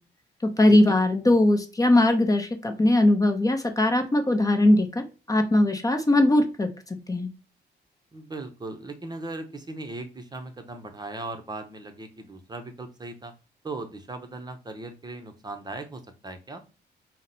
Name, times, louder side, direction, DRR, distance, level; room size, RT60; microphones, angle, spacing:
voice 1, 0.6-6.7 7.1-7.3, left 1 dB, 20° left, 6 dB, 0.8 m, -20 dB
voice 2, 8.1-13.3 13.6-16.6, right 2 dB, 25° right, 6 dB, 0.8 m, -38 dB
5.8 x 2.1 x 3.9 m, 0.32 s
cardioid pair, 115°, 18 cm